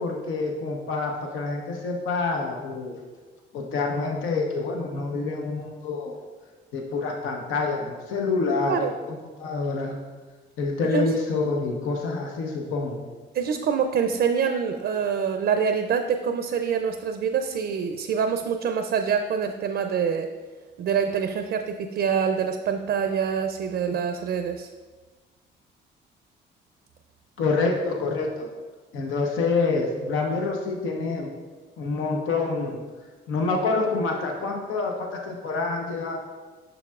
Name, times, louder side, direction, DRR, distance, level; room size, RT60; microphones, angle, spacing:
voice 1, 0.0-3.0 3.5-6.2 6.7-10.0 10.6-13.0 27.4-28.5 28.9-31.3 31.8-32.8 33.3-36.2, left 3 dB, 90° left, 1 dB, 0.8 m, -27 dB
voice 2, 13.3-20.3 20.8-24.7, right 7 dB, 60° right, 7 dB, 0.4 m, -25 dB
6.9 x 6.1 x 2.4 m, 1.3 s
cardioid pair, 90°, 20 cm